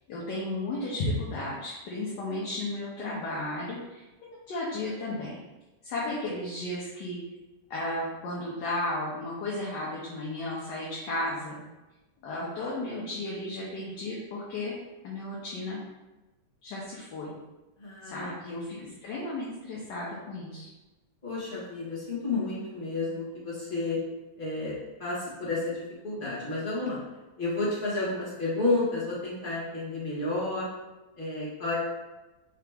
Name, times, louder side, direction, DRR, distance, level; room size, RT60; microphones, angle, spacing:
voice 1, 0.1-5.4 5.8-7.2 7.7-11.6 12.2-14.7 15.0-15.8 16.6-17.4 18.0-20.7, left 2 dB, 75° left, -5 dB, 1.5 m, -34 dB
voice 2, 17.8-18.9 21.2-24.0 24.4-24.7 25.0-27.0 27.4-30.7 31.2-31.8, left 2 dB, 30° left, -7 dB, 1.4 m, -31 dB
4.5 x 2.9 x 3.4 m, 1.1 s
omnidirectional pair, 1.9 m